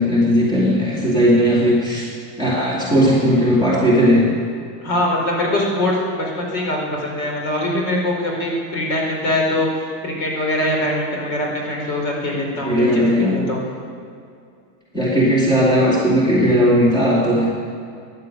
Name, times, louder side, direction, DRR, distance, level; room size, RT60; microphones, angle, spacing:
voice 1, 0.0-2.0 2.4-4.2 12.6-13.3 14.9-17.5, equal, 10° left, -5 dB, 2.4 m, -16 dB
voice 2, 4.8-9.7 10.0-13.6, left 1 dB, 55° left, 0 dB, 5.1 m, -22 dB
14.5 x 10.5 x 9.2 m, 2.3 s
supercardioid pair, 170°, 47 cm